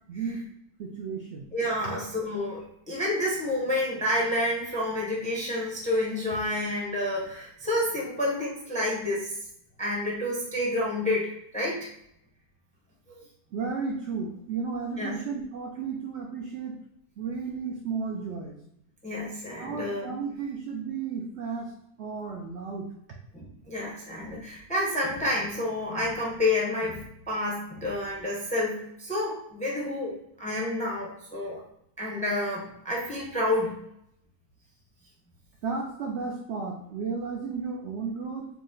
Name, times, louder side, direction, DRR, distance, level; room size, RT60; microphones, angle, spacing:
voice 1, 0.1-0.4 0.8-1.5 1.8-2.0 13.5-16.8 17.2-18.6 19.6-21.7 22.0-22.9 35.6-38.5, right 5 dB, 70° right, 0 dB, 0.6 m, -33 dB
voice 2, 1.5-9.3 9.8-11.9 13.1-13.2 15.0-15.2 19.0-20.1 23.3-31.6 32.0-33.8, left 1 dB, 5° left, -4 dB, 0.5 m, -29 dB
4.8 x 2.1 x 3.7 m, 0.75 s
omnidirectional pair, 1.7 m